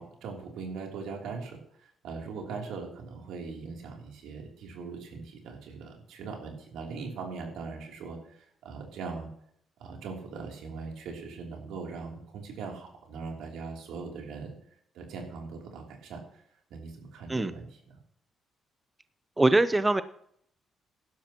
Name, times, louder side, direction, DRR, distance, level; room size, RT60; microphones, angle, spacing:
voice 1, 0.0-9.3 9.8-14.5 14.9-16.4 16.7-18.0, right 4 dB, 85° right, 0 dB, 3.2 m, -40 dB
voice 2, 19.4-20.0, right 2 dB, 15° right, 13 dB, 0.5 m, -22 dB
17.0 x 12.0 x 3.0 m, 0.69 s
cardioid pair, 90°, 0 cm